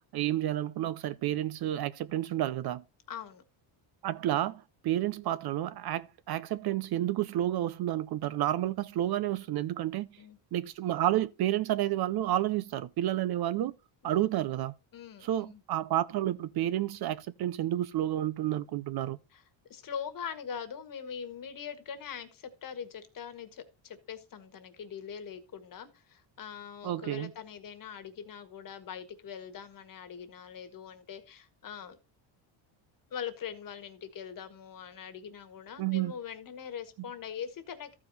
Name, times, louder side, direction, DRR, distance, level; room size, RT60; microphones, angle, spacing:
voice 1, 0.1-2.8 4.0-10.1 10.5-13.7 14.0-14.7 15.2-19.2 26.8-27.3 35.8-36.1, right 13 dB, 50° right, 0.6 m, -30 dB
voice 2, 3.1-3.4 10.2-10.4 14.0-14.2 14.9-15.6 19.3-19.4 19.7-32.0 33.1-38.0, left 7 dB, 40° left, 1.6 m, -42 dB
14.0 x 4.9 x 4.1 m
cardioid pair, 130°, 49 cm